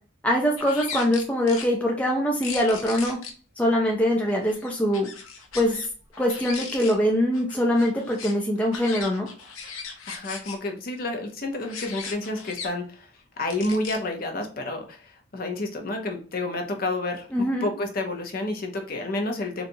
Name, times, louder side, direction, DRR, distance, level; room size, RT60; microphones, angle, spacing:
voice 1, 0.2-3.2 3.6-5.1 5.5-5.8 6.2-9.3 17.3-17.7, equal, 5° left, 0 dB, 0.4 m, -23 dB
sound 1, 0.6-1.7 2.4-3.3 4.3-5.9 6.1-6.9 7.3-10.6 11.6-12.7 13.5-14.0, left 5 dB, 85° left, 0.7 m, -38 dB
voice 2, 10.1-13.1 13.4-19.6, left 2 dB, 45° left, 3 dB, 0.6 m, -30 dB
4.0 x 2.3 x 2.6 m, 0.39 s
head